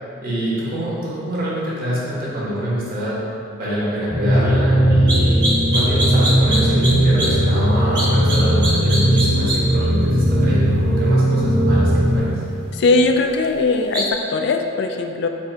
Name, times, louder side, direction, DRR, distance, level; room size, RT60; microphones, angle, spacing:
voice 1, 0.2-3.2 3.6-12.3, equal, 50° right, -7 dB, 1.2 m, -25 dB
sound 1, 4.1-12.2, right 1 dB, 5° left, 0.9 m, -17 dB
sound 2, 5.1-5.2 5.4-6.9 7.2-7.3 7.9-8.4 8.6-9.6 13.9-14.0, right 1 dB, 20° right, 1.0 m, -22 dB
voice 2, 12.7-15.3, left 3 dB, 60° left, 4 dB, 0.3 m, -19 dB
4.3 x 2.8 x 4.3 m, 2.6 s
head